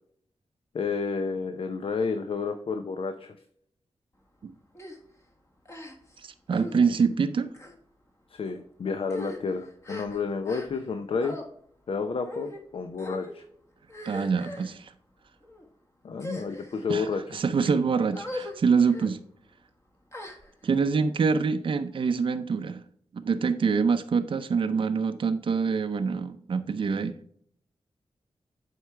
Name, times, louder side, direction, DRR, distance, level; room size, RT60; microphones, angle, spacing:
voice 1, 0.7-3.3 8.3-11.4 11.9-13.4 16.0-17.2, left 5 dB, 60° left, 0.6 m, -30 dB
sound 1, 4.7-5.0 5.6-6.2 6.5-6.8 7.5-7.7 8.4-8.6 9.0-10.9 11.2-11.4 12.2-12.6 13.0-13.3 13.9-14.7 15.4-15.6 16.1-16.8 17.4-17.7 18.1-18.5 18.9-19.1 20.1-20.8, left 1 dB, 30° left, 1.5 m, -40 dB
voice 2, 6.2-7.5 14.0-14.9 16.9-19.2 20.6-22.8 23.1-27.3, right 5 dB, 55° right, 0.5 m, -25 dB
7.8 x 4.7 x 3.3 m
wide cardioid pair, 85°, 10 cm